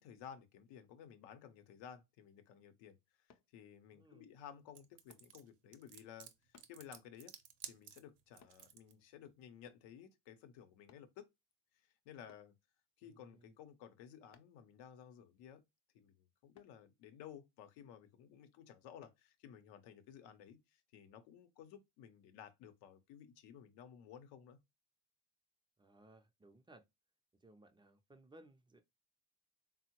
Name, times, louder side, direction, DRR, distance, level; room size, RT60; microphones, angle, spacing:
voice 1, 0.0-3.0 3.5-6.3 6.7-7.3 7.6-11.3 11.8-12.5 13.0-15.6 15.9-24.6, left 9 dB, 75° left, 0.7 m, -56 dB
sound 1, 3.3-3.5 5.1-5.3 6.5-6.8 8.4-8.6 9.7-9.9 10.9-11.1 12.3-12.5 14.3-14.6 16.5-16.8 19.0-19.2 19.8-19.9, left 7 dB, 40° left, 0.5 m, -66 dB
voice 2, 3.9-4.3 13.0-13.6 25.8-26.9 27.4-28.8, right 1 dB, 10° right, 0.4 m, -62 dB
sound 2, 4.8-8.9, right 10 dB, 70° right, 0.6 m, -53 dB
3.6 x 2.0 x 2.8 m
supercardioid pair, 75°, 44 cm